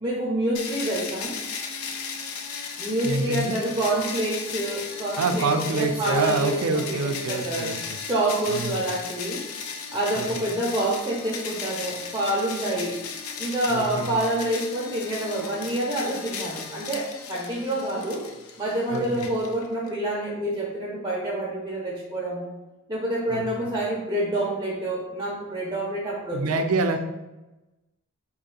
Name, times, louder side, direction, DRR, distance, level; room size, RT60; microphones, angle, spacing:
voice 1, 0.0-1.3 2.8-7.7 8.0-9.4 9.9-13.0 13.4-18.2 18.6-22.5 22.9-26.6, right 1 dB, 15° right, -4 dB, 0.7 m, -27 dB
sound 1, 0.5-19.9, left 5 dB, 80° left, 0.5 m, -36 dB
voice 2, 3.0-3.6 5.2-7.8 8.5-8.8 10.2-10.3 13.7-14.2 18.9-19.3 23.3-23.4 26.3-27.0, right 3 dB, 90° right, 6 dB, 0.5 m, -26 dB
4.3 x 2.7 x 3.8 m, 1.0 s
head